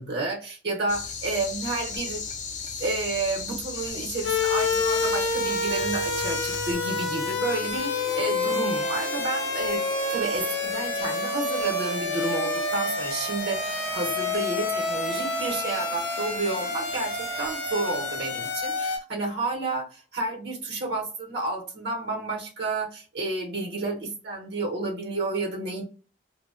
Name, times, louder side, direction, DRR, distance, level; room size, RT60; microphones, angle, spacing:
voice 1, 0.0-2.3 2.8-9.8 10.1-25.8, right 3 dB, 60° right, 0 dB, 0.8 m, -31 dB
sound 1, 0.9-6.7, left 5 dB, 40° left, 0.4 m, -35 dB
sound 2, 0.9-19.0, right 4 dB, 35° right, 0.3 m, -40 dB
sound 3, 4.2-19.0, left 3 dB, 85° left, 0.6 m, -28 dB
2.6 x 2.0 x 2.4 m, 0.35 s
head